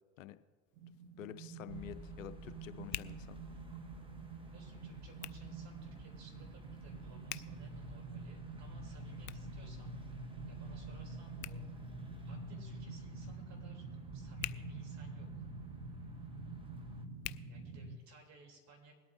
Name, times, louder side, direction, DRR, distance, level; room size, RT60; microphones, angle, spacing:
Hands, 0.6-18.3, left 18 dB, 45° left, 0.4 m, -52 dB
sound 1, 0.8-18.0, right 3 dB, 70° right, 0.9 m, -47 dB
voice 1, 1.2-3.4 17.3-17.4, left 13 dB, 85° left, 12 dB, 0.7 m, -49 dB
sound 2, 1.7-17.0, left 1 dB, 15° right, 1.1 m, -55 dB
voice 2, 4.5-9.9 10.5-11.7 12.2-13.9 14.1-15.5 17.5-18.9, right 3 dB, 45° right, 1 dB, 3.6 m, -60 dB
22.0 x 8.6 x 2.8 m, 1.5 s
hypercardioid pair, 75°, 38 cm